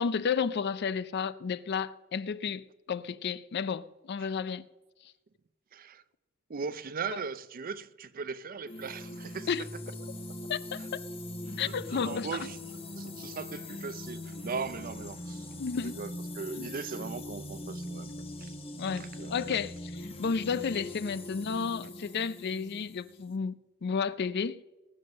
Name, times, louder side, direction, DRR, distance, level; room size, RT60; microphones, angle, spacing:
voice 1, 0.0-4.6 9.5-9.6 10.5-10.8 11.6-12.3 15.6-16.0 16.6-16.7 18.8-23.5 23.8-24.6, left 6 dB, 55° left, 0.4 m, -32 dB
voice 2, 5.7-6.0 6.5-9.7 10.8-10.9 11.5-12.6 13.0-15.5 15.8-18.1 18.4-18.5 18.9-19.5, right 5 dB, 45° right, 0.5 m, -39 dB
sound 1, 8.7-23.4, left 1 dB, 30° left, 1.2 m, -41 dB
19.5 x 7.8 x 6.5 m
head